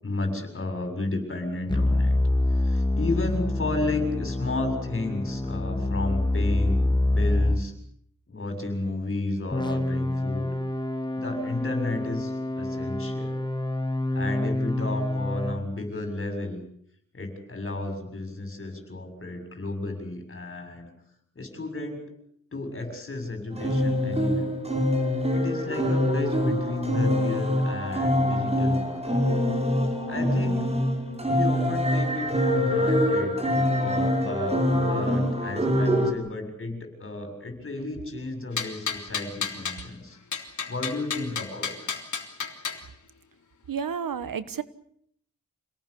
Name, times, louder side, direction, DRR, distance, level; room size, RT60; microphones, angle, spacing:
voice 1, 0.0-2.2 2.5-7.7 8.3-10.5 11.1-13.4 14.1-16.6 17.1-20.9 21.4-22.1 22.5-24.6 25.3-29.1 30.1-30.6 31.3-40.2 40.7-42.0, left 2 dB, 40° left, 6 dB, 7.4 m, -33 dB
sound 1, 1.7-7.6 9.5-15.6, left 2 dB, 15° left, 2.5 m, -26 dB
sound 2, 23.5-36.1, equal, 20° right, 5.1 m, -24 dB
sound 3, 38.6-39.8 40.3-42.8, left 6 dB, 60° left, 3.6 m, -32 dB
voice 2, 43.7-44.6, right 7 dB, 80° right, 14 dB, 1.5 m, -31 dB
27.5 x 19.0 x 8.4 m, 0.67 s
wide cardioid pair, 130°, 33 cm